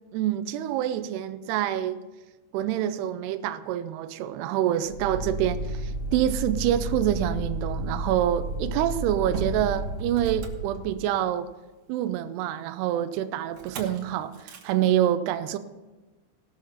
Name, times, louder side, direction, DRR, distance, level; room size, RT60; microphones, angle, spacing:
voice 1, 0.1-2.0 2.5-11.5 11.9-15.6, right 11 dB, 85° right, 2.3 m, -26 dB
Motor vehicle (road), 4.9-11.3 13.6-14.0 14.3-14.7, right 1 dB, 60° right, 2.4 m, -32 dB
18.0 x 6.4 x 5.7 m
omnidirectional pair, 5.3 m